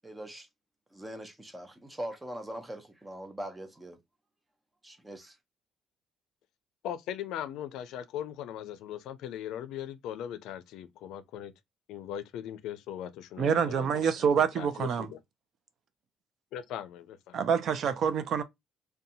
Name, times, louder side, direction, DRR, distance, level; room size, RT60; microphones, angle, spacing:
voice 1, 0.0-0.5 0.9-4.0 4.8-5.4, right 1 dB, 10° right, 0.7 m, -41 dB
voice 2, 6.8-11.5 11.9-15.2 16.5-17.4, left 10 dB, 80° left, 0.4 m, -39 dB
voice 3, 13.4-15.1 17.3-18.4, right 7 dB, 55° right, 0.4 m, -26 dB
2.7 x 2.2 x 2.6 m
cardioid pair, 125°, 0 cm